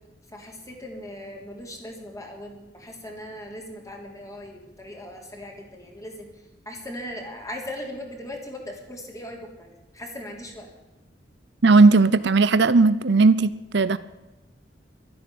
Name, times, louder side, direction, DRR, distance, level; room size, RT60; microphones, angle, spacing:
voice 1, 0.3-6.3 6.7-10.7, left 1 dB, 20° left, 1 dB, 3.5 m, -39 dB
voice 2, 11.6-14.0, right 3 dB, 70° right, 15 dB, 0.7 m, -17 dB
13.0 x 11.5 x 8.7 m, 1.1 s
head